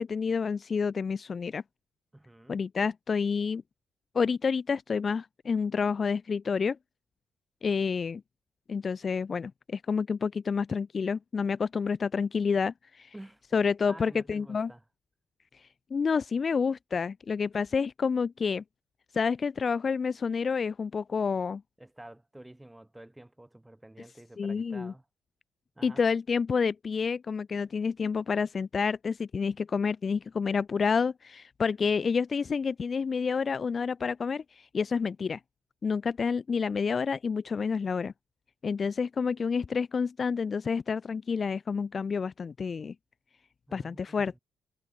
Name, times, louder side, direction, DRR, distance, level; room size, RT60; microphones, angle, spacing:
voice 1, 0.0-1.6 2.5-3.6 4.1-6.8 7.6-8.2 8.7-13.1 13.5-14.7 15.5-18.6 19.1-21.6 24.4-24.9 25.8-35.4 35.8-38.1 38.6-42.9 43.7-44.4, left 5 dB, 40° left, 0.7 m, -29 dB
voice 2, 2.1-2.6 13.1-13.4 13.9-14.8 21.8-25.0 25.8-26.0 43.7-44.4, right 1 dB, 10° right, 4.6 m, -49 dB
cardioid pair, 90°, 0 cm